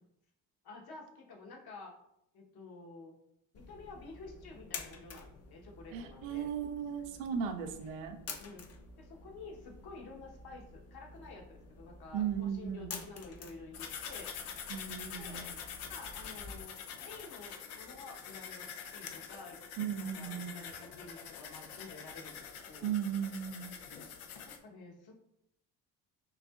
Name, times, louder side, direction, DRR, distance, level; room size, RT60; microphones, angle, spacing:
voice 1, 0.6-2.0 2.3-3.2 3.5-6.5 8.4-8.7 9.0-14.3 15.2-15.6 15.9-19.6 20.0-22.9 24.4-25.1, left 3 dB, 55° left, 0 dB, 1.2 m, -50 dB
sound 1, 3.5-16.6, left 4 dB, 35° left, 0.6 m, -50 dB
voice 2, 5.9-8.2 12.1-13.0 14.7-15.5 19.8-20.6 22.8-23.8, right 8 dB, 80° right, 6 dB, 0.6 m, -36 dB
sound 2, 13.7-24.6, left 7 dB, 85° left, 0.6 m, -46 dB
5.9 x 2.7 x 2.4 m, 0.78 s
hypercardioid pair, 60°, 44 cm